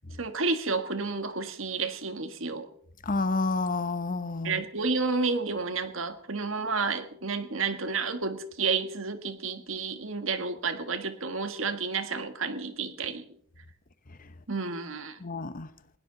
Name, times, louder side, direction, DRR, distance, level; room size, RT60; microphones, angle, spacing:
voice 1, 0.2-2.7 4.4-13.3 14.5-15.2, right 4 dB, 70° right, 9 dB, 1.6 m, -31 dB
voice 2, 3.1-4.6 15.2-15.7, left 3 dB, 40° left, 13 dB, 0.9 m, -29 dB
20.5 x 17.0 x 4.0 m, 0.63 s
head